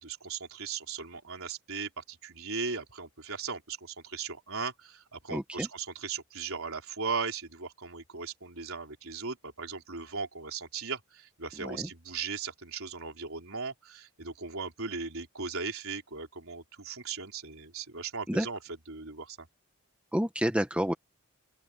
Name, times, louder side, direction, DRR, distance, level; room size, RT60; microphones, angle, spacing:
voice 1, 0.0-18.6 18.9-19.5, right 5 dB, 65° right, 4.1 m, -38 dB
voice 2, 5.3-5.7 11.6-11.9 18.3-18.5 20.1-20.9, equal, 5° right, 1.3 m, -29 dB
open air
head